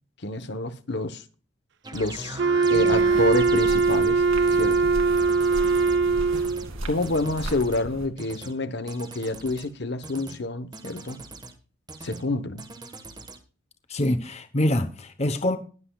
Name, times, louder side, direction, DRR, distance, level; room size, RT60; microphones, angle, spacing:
voice 1, 0.2-1.2 1.9-2.4 2.7-4.2 4.5-4.9 6.8-11.2 12.0-12.6, left 2 dB, 55° left, 1.0 m, -28 dB
sound 1, 1.8-4.1 4.5-4.8 5.2-6.0 6.3-6.7 7.0-7.8 8.2-8.5 8.9-9.7 10.0-10.4 10.7-11.5 11.9-12.2 12.6-13.4, right 2 dB, 20° right, 1.3 m, -40 dB
Wind instrument woodwind instrument, 2.4-6.7, right 4 dB, 55° right, 0.7 m, -21 dB
sound 2, 2.7-8.1, right 1 dB, 80° right, 2.3 m, -36 dB
voice 2, 13.9-15.6, left 1 dB, 30° left, 0.9 m, -25 dB
20.5 x 7.9 x 2.3 m
head